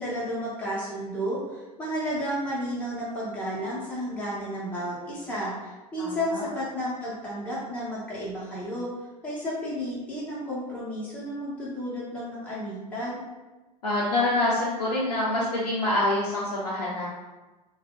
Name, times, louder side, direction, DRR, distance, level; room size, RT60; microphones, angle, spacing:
voice 1, 0.0-8.9 9.2-13.2, equal, 5° left, -8 dB, 0.9 m, -32 dB
voice 2, 6.0-6.4 13.8-17.1, left 2 dB, 80° left, -6 dB, 0.6 m, -26 dB
3.4 x 2.3 x 2.3 m, 1.2 s
figure-of-eight pair, 75°, 20 cm